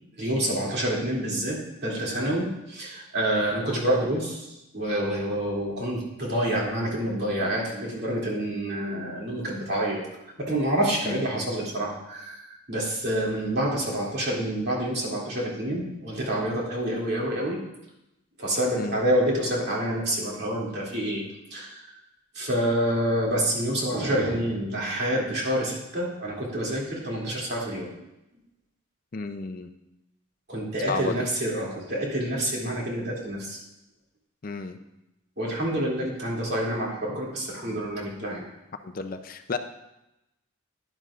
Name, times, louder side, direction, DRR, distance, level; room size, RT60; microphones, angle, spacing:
voice 1, 0.2-4.5 4.7-10.0 10.4-12.4 12.7-17.6 18.4-21.2 21.5-21.8 22.3-27.9 30.5-33.6 35.4-38.5, right 1 dB, 55° right, -4 dB, 2.6 m, -27 dB
voice 2, 29.1-29.7 30.9-31.3 34.4-34.8 37.6-37.8 38.8-39.6, left 3 dB, 45° left, 8 dB, 0.5 m, -32 dB
11.0 x 11.0 x 2.5 m, 0.91 s
head